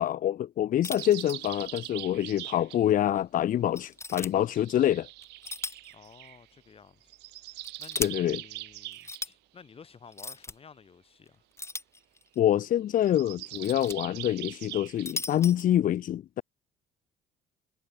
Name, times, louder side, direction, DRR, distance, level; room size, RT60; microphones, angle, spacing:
voice 1, 0.0-5.1 8.0-8.4 12.4-16.4, left 11 dB, 55° left, 0.9 m, -26 dB
sound 1, 0.8-1.9 2.2-2.3 2.9-3.0 3.7-4.3 5.2-5.9 6.2-6.3 7.3-8.1 8.9-9.3 10.1-10.5 11.6-12.4 13.3-14.0 14.8-15.7, left 3 dB, 15° left, 3.0 m, -37 dB
sound 2, 1.0-2.8 4.4-6.4 7.0-9.2 12.9-15.1, right 20 dB, 90° right, 1.7 m, -42 dB
voice 2, 5.9-11.4, left 6 dB, 35° left, 4.0 m, -54 dB
cardioid pair, 110°, 17 cm